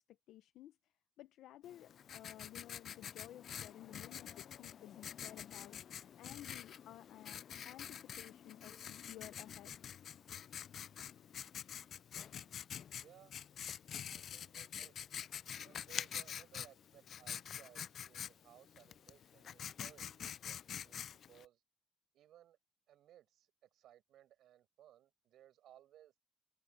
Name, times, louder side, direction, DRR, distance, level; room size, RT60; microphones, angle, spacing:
voice 1, 0.1-7.4 7.6-9.8, left 13 dB, 85° left, 0.8 m, -55 dB
Writing, 1.6-21.4, left 9 dB, 60° left, 0.3 m, -47 dB
voice 2, 12.2-12.6 13.0-13.3 14.1-15.0 15.6-21.6 22.1-22.6 22.9-26.2, right 12 dB, 80° right, 7.5 m, -63 dB
cardioid pair, 90°, 0 cm